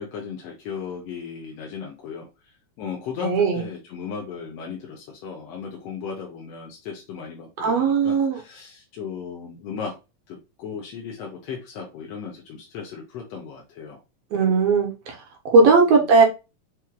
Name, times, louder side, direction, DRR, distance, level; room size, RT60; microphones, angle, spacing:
voice 1, 0.0-2.5 2.8-10.0 10.3-14.0, left 6 dB, 70° left, 1.6 m, -36 dB
voice 2, 3.2-3.6 7.6-8.4 14.3-15.2 15.4-16.2, right 4 dB, 65° right, 1.6 m, -18 dB
5.7 x 3.1 x 2.2 m
omnidirectional pair, 3.5 m